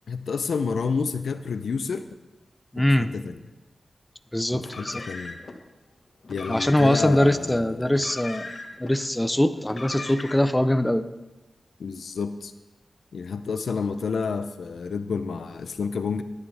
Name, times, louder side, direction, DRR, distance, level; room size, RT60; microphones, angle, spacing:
voice 1, 0.1-2.0 2.8-3.4 4.5-5.4 6.3-8.0 11.8-12.5 13.1-16.2, left 5 dB, 85° left, 10 dB, 0.6 m, -30 dB
voice 2, 2.7-3.1 4.3-5.0 6.5-8.5 8.8-11.0, left 1 dB, 10° left, 11 dB, 0.7 m, -22 dB
Car, 4.6-5.6 6.2-7.2 7.9-8.9 9.6-10.6, left 3 dB, 60° left, 1.5 m, -39 dB
18.5 x 10.0 x 3.5 m, 1.0 s
cardioid pair, 55°, 0 cm